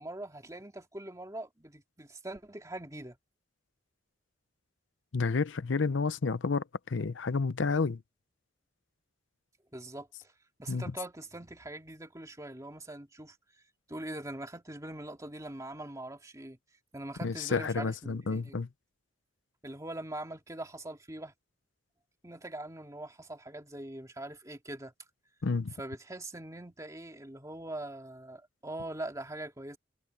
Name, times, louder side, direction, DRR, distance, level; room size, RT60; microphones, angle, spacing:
voice 1, 0.0-3.2 9.7-10.3 10.6-13.4 13.9-16.6 16.9-18.6 19.6-21.3 22.2-24.9 25.8-29.8, right 1 dB, 15° right, 2.3 m, -42 dB
voice 2, 5.1-8.0 10.7-10.8 17.2-18.7 25.4-25.7, left 4 dB, 75° left, 0.6 m, -30 dB
head